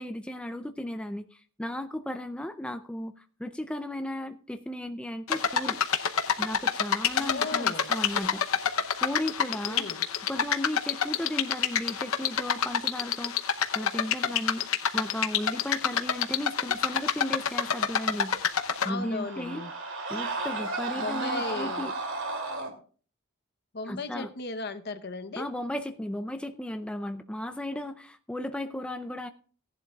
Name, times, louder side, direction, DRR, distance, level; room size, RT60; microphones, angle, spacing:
voice 1, 0.0-5.8 6.4-9.9 10.3-14.6 14.9-18.5 18.8-19.6 20.1-21.9 23.9-24.3 25.4-29.3, left 1 dB, 5° left, 8 dB, 0.4 m, -35 dB
sound 1, 5.3-18.9, left 7 dB, 80° left, 0.8 m, -28 dB
voice 2, 7.2-7.9 9.7-10.0 18.8-19.7 21.0-21.9 23.7-25.5, left 3 dB, 50° left, 9 dB, 0.9 m, -36 dB
Screaming, 18.3-22.7, right 3 dB, 60° right, 2.4 m, -34 dB
17.0 x 11.0 x 2.4 m, 0.42 s
head